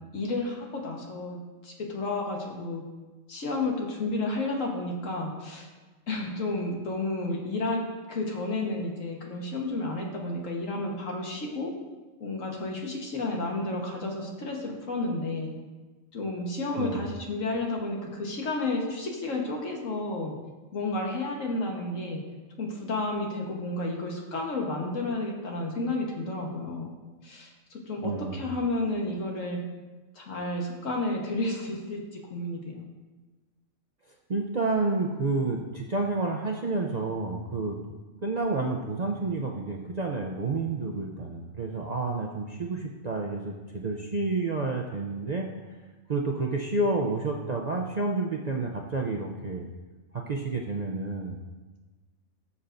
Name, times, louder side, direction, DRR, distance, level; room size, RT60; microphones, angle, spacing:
voice 1, 0.1-1.4 1.6-2.8 3.3-5.7 6.1-11.7 12.2-15.5 16.1-20.3 20.7-22.2 22.6-26.9 27.2-29.6 30.1-32.8, left 2 dB, 70° left, 0 dB, 1.7 m, -31 dB
voice 2, 28.0-28.4 34.3-37.8 38.2-45.5 46.1-49.7 50.1-51.4, right 3 dB, 45° right, 0 dB, 0.5 m, -29 dB
14.0 x 7.1 x 2.6 m, 1.3 s
omnidirectional pair, 1.4 m